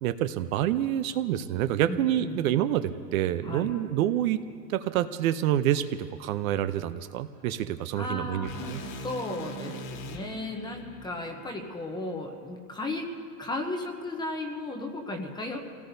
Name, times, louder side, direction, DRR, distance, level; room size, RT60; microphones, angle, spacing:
voice 1, 0.0-4.4 4.7-8.8, right 11 dB, 55° right, 12 dB, 0.7 m, -27 dB
voice 2, 1.9-2.4 3.4-3.7 7.9-13.1 13.4-15.6, left 2 dB, 10° left, 3 dB, 0.7 m, -35 dB
sound 1, 8.4-12.6, equal, 45° left, 1.8 m, -42 dB
27.5 x 17.5 x 2.7 m, 2.6 s
supercardioid pair, 160°, 49 cm